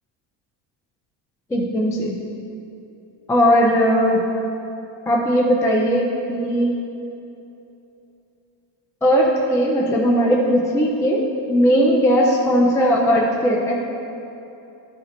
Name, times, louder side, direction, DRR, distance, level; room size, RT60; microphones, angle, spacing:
voice 1, 1.5-2.2 3.3-4.2 5.1-6.8 9.0-13.7, equal, 10° left, -2 dB, 0.3 m, -18 dB
12.5 x 4.3 x 3.9 m, 2.9 s
cardioid pair, 160°, 47 cm